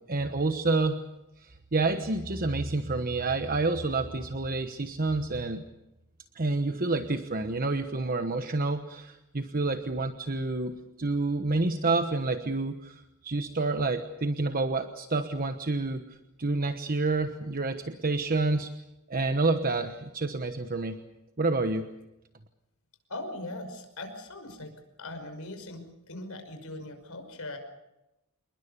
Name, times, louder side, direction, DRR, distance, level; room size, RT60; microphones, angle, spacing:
voice 1, 0.1-1.0 1.4-5.6 6.3-18.7 19.1-21.0 21.4-21.9, right 3 dB, 40° right, 8 dB, 1.2 m, -29 dB
voice 2, 23.1-24.7 25.0-27.6, left 2 dB, 70° left, 6 dB, 5.8 m, -40 dB
28.0 x 21.5 x 6.9 m, 0.93 s
head